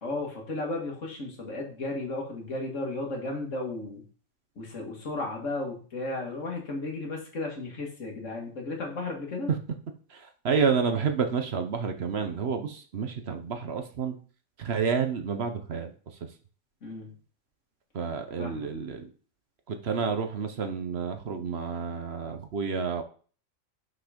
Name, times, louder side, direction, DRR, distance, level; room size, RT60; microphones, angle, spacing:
voice 1, 0.0-4.0 4.6-9.5 16.8-17.1 18.4-18.7, left 2 dB, 70° left, 0 dB, 2.2 m, -34 dB
voice 2, 10.1-14.1 14.6-15.9 17.9-19.1 19.7-23.0, right 6 dB, 55° right, 6 dB, 1.0 m, -29 dB
5.9 x 5.8 x 5.0 m, 0.41 s
omnidirectional pair, 1.3 m